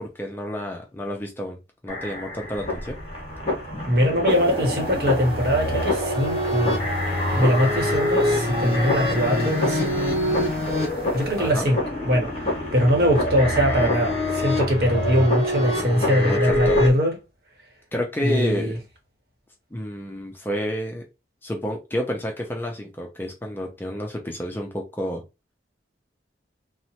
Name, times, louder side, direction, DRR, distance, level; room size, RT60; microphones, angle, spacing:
voice 1, 0.0-3.0 11.4-11.7 16.2-16.8 17.9-18.8 19.7-21.0 21.4-25.2, left 1 dB, 10° left, 0.4 m, -30 dB
sound 1, 1.9-16.9, left 1 dB, 35° left, 0.9 m, -25 dB
voice 2, 3.9-6.9 7.4-10.0 11.1-12.3 12.7-17.2 18.2-18.7, equal, 55° right, 0.9 m, -22 dB
sound 2, 4.3-11.5, right 1 dB, 30° right, 1.0 m, -37 dB
2.9 x 2.1 x 2.8 m
head